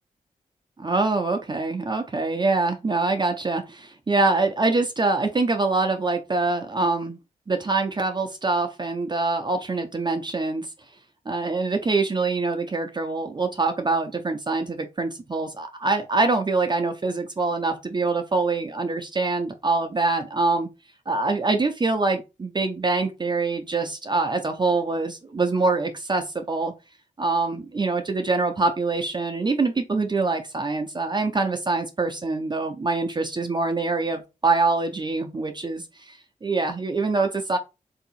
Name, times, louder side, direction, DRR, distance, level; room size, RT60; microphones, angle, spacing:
voice 1, 0.8-7.2 7.5-10.7 11.3-20.7 21.1-26.7 27.2-37.6, right 3 dB, 30° right, 0.6 m, -24 dB
3.5 x 2.8 x 4.1 m
cardioid pair, 65°, 15 cm